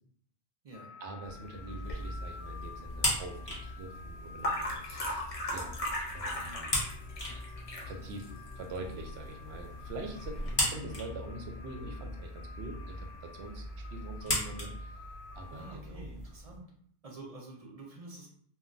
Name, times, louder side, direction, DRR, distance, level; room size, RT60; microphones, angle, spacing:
sound 1, 0.7-15.8, left 5 dB, 75° left, 0.8 m, -51 dB
voice 1, 1.0-5.8 6.1-6.8 7.8-15.0 15.3-16.1, right 2 dB, 80° right, 3 dB, 0.9 m, -44 dB
sound 2, 1.2-16.6, left 1 dB, 25° left, 1.0 m, -39 dB
voice 2, 1.7-2.2 10.6-10.9 15.5-16.7 17.0-18.3, right 2 dB, 45° right, -2 dB, 0.5 m, -48 dB
sound 3, 1.8-10.5, left 1 dB, 40° left, 0.7 m, -39 dB
2.3 x 2.2 x 3.7 m, 0.63 s
omnidirectional pair, 1.1 m